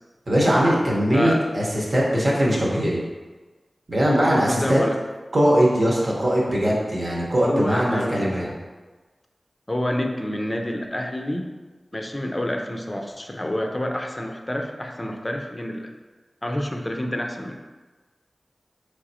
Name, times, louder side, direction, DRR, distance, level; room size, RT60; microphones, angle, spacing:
voice 1, 0.3-3.0 3.9-4.8 5.3-8.5, equal, 55° right, -4 dB, 1.0 m, -20 dB
voice 2, 1.1-1.4 4.5-5.0 7.4-8.6 9.7-11.5 11.9-15.9 16.4-17.6, left 1 dB, 25° left, 3 dB, 0.5 m, -28 dB
3.9 x 3.3 x 2.7 m, 1.3 s
cardioid pair, 45°, 0 cm